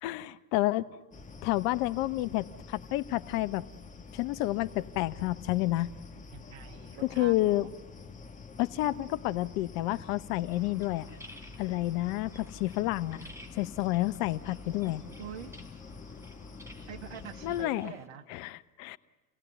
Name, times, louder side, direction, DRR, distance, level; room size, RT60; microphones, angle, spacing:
voice 1, 0.0-0.9 1.4-3.7 4.1-5.9 7.0-7.7 8.6-11.1 11.6-13.3 13.5-15.0 17.4-17.9 18.3-19.0, left 17 dB, 50° left, 13 dB, 1.0 m, -30 dB
sound 1, 1.1-17.7, left 4 dB, 15° left, 2.0 m, -47 dB
voice 2, 6.3-7.7 15.2-15.5 16.9-18.3, right 9 dB, 60° right, 7 dB, 1.9 m, -45 dB
sound 2, 10.5-18.1, equal, 5° right, 3.7 m, -55 dB
29.0 x 17.5 x 9.1 m, 1.3 s
hypercardioid pair, 85°, 43 cm